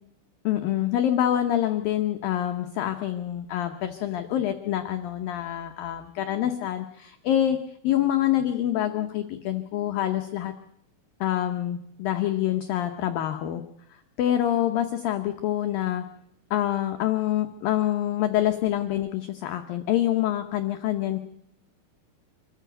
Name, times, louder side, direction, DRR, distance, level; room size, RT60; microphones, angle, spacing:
voice 1, 0.4-7.6 7.8-10.5 11.2-13.6 13.9-16.0 16.5-21.2, left 12 dB, 85° left, 6 dB, 2.0 m, -26 dB
25.0 x 14.0 x 7.9 m, 0.77 s
omnidirectional pair, 5.4 m